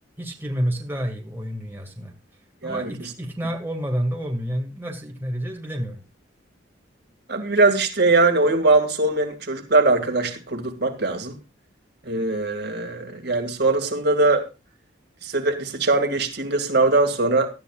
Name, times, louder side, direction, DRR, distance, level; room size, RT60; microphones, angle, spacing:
voice 1, 0.2-2.1 2.6-6.0, equal, 10° right, 2.1 m, -29 dB
voice 2, 2.6-3.1 7.3-11.4 12.1-14.5 15.2-17.5, right 3 dB, 60° right, 2.3 m, -21 dB
18.0 x 12.5 x 2.4 m
head